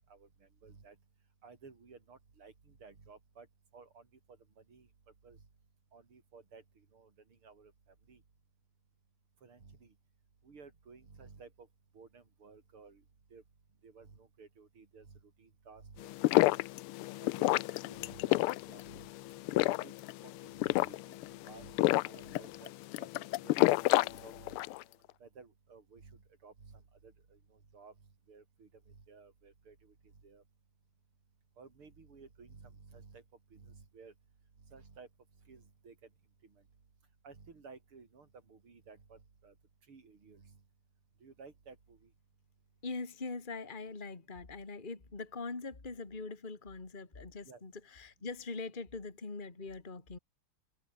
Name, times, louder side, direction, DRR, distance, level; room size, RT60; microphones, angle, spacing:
voice 1, 0.6-1.0 1.4-3.5 3.7-4.0 4.7-4.9 5.2-5.4 5.9-6.6 6.9-7.1 7.4-7.7 8.1-8.2 9.4-9.9 10.4-11.7 11.9-13.0 13.3-13.4 13.8-16.6 17.4-18.4 18.7-18.8 19.7-19.9 20.2-21.7 22.0-22.7 23.0-24.6 25.2-27.4 27.7-27.9 28.3-29.9 30.2-30.4 31.6-33.2 33.5-34.1 34.7-35.1 35.5-35.9 37.2-39.5 39.9-40.5 41.2-42.0 47.4-47.6, right 5 dB, 80° right, 4.5 m, -55 dB
sound 1, 16.0-24.8, left 18 dB, 85° left, 1.5 m, -30 dB
voice 2, 42.8-50.2, left 3 dB, 25° left, 2.4 m, -42 dB
omnidirectional pair, 2.3 m